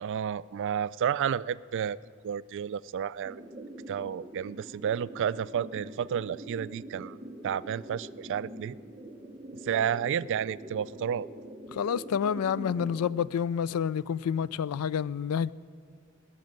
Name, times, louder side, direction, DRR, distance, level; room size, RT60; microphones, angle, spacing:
voice 1, 0.0-2.0 2.2-3.4 3.9-7.2 7.4-8.8 9.6-11.3, right 8 dB, 60° right, 0.3 m, -31 dB
sound 1, 3.2-13.2, right 1 dB, 15° right, 0.8 m, -44 dB
voice 2, 11.8-15.5, left 7 dB, 85° left, 0.4 m, -29 dB
19.0 x 6.6 x 9.2 m
head